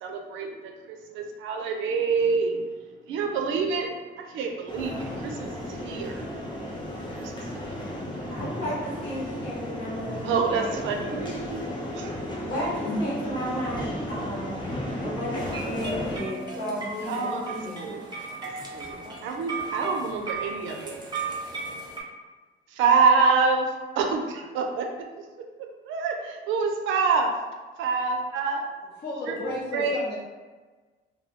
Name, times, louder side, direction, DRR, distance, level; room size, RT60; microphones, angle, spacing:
voice 1, 0.0-2.7 3.1-3.9 4.2-6.3 7.2-7.7 10.2-12.1 17.0-18.1 18.7-21.0 22.7-24.9 25.2-25.3 25.8-27.3 27.8-28.6 29.7-30.0, right 5 dB, 80° right, 3 dB, 0.4 m, -27 dB
sound 1, 4.7-16.2, equal, 25° left, 0.6 m, -34 dB
voice 2, 8.3-11.2 12.2-14.5 15.0-18.3 18.6-18.7, equal, 90° left, -9 dB, 1.3 m, -34 dB
sound 2, 15.4-22.0, right 3 dB, 20° right, 0.5 m, -36 dB
voice 3, 29.0-30.2, left 1 dB, 60° left, -3 dB, 0.7 m, -32 dB
2.2 x 2.0 x 2.8 m, 1.3 s
cardioid pair, 90°, 20 cm